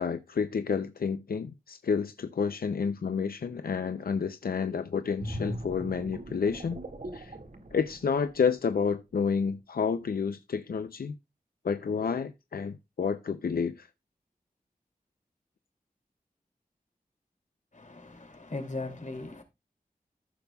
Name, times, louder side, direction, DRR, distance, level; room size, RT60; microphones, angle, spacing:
voice 1, 0.0-6.8 7.1-7.4 7.7-11.2 11.6-13.9, left 6 dB, 90° left, 0.5 m, -30 dB
sound 1, 5.2-8.8 9.2-9.4, right 1 dB, 65° right, 1.9 m, -40 dB
voice 2, 17.7-19.4, left 2 dB, 55° left, 2.6 m, -38 dB
15.0 x 6.8 x 2.3 m
wide cardioid pair, 70°, 15 cm